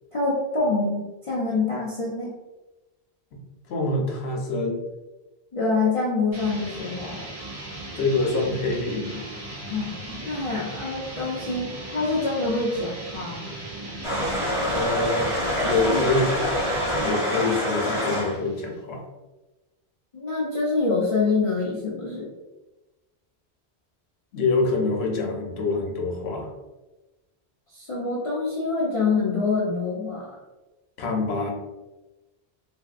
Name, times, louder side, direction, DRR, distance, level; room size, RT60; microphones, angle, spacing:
voice 1, 0.1-2.4 5.5-7.3 9.7-13.6 15.6-16.1 20.1-22.3 27.7-30.4, left 3 dB, 40° left, -7 dB, 0.5 m, -26 dB
voice 2, 3.7-4.9 8.0-9.2 14.7-15.3 15.6-16.2 17.0-19.0 24.3-26.5 31.0-31.5, left 3 dB, 80° left, 1 dB, 0.9 m, -25 dB
sound 1, 6.3-18.8, right 1 dB, 90° right, 1.1 m, -38 dB
sound 2, 14.0-18.4, left 1 dB, 30° right, 1.2 m, -26 dB
3.2 x 2.6 x 2.4 m, 1.1 s
omnidirectional pair, 1.1 m